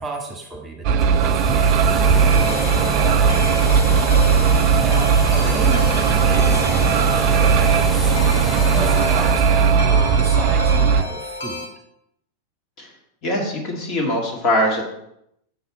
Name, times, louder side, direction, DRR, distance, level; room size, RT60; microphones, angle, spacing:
voice 1, 0.0-11.7, right 2 dB, 20° right, 1 dB, 1.5 m, -33 dB
sound 1, 0.8-11.0, right 6 dB, 45° right, 0.3 m, -17 dB
sound 2, 1.0-9.8, right 1 dB, ahead, 1.7 m, -28 dB
sound 3, 2.3-11.7, left 3 dB, 60° left, 1.1 m, -32 dB
voice 2, 13.2-14.8, left 1 dB, 40° left, 0 dB, 2.0 m, -22 dB
6.6 x 6.5 x 4.1 m, 0.77 s
figure-of-eight pair, 90°, 0 cm